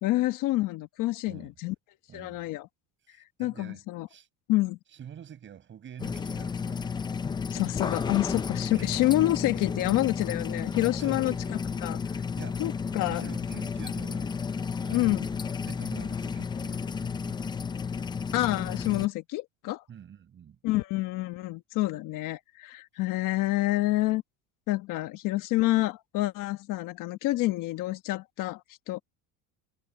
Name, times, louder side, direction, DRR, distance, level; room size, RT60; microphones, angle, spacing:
voice 1, 0.0-1.7 2.1-2.7 3.4-4.1 4.5-4.8 7.5-12.0 12.6-13.3 14.9-15.3 18.3-19.8 20.6-24.2 24.7-29.0, left 17 dB, 60° left, 1.3 m, -28 dB
voice 2, 2.1-2.5 3.1-3.8 4.1-4.3 4.9-6.9 8.7-8.9 11.0-11.9 12.4-12.6 12.9-14.4 14.8-15.4 15.7-17.4 19.9-20.6, right 9 dB, 30° right, 7.0 m, -47 dB
sound 1, 6.0-19.1, left 5 dB, 15° left, 0.4 m, -32 dB
cardioid pair, 160°, 36 cm